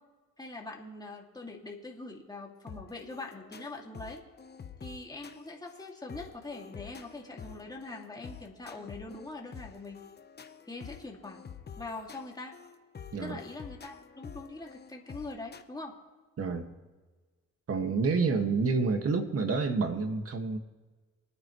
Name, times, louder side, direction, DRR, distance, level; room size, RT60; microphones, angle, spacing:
voice 1, 0.4-4.2 4.8-10.0 10.7-11.4 11.8-12.5 13.1-16.0, left 2 dB, 15° left, -1 dB, 2.4 m, -43 dB
sound 1, 2.7-15.6, left 7 dB, 35° left, 1.0 m, -48 dB
voice 2, 16.4-16.7 17.7-20.6, right 4 dB, 50° right, 6 dB, 1.9 m, -28 dB
25.5 x 9.5 x 3.2 m, 1.3 s
cardioid pair, 90°, 30 cm